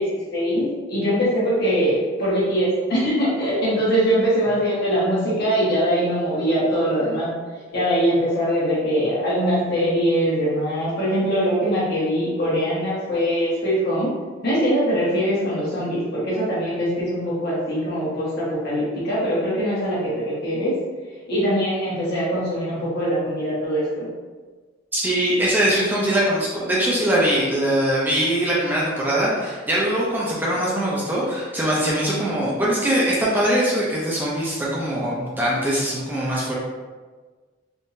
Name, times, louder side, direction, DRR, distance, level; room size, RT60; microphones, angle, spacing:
voice 1, 0.0-7.3 7.7-14.1 14.4-20.7 21.3-24.1, equal, 55° left, -8 dB, 1.3 m, -22 dB
voice 2, 24.9-36.5, right 1 dB, 10° right, -6 dB, 0.5 m, -22 dB
3.6 x 2.7 x 2.6 m, 1.4 s
head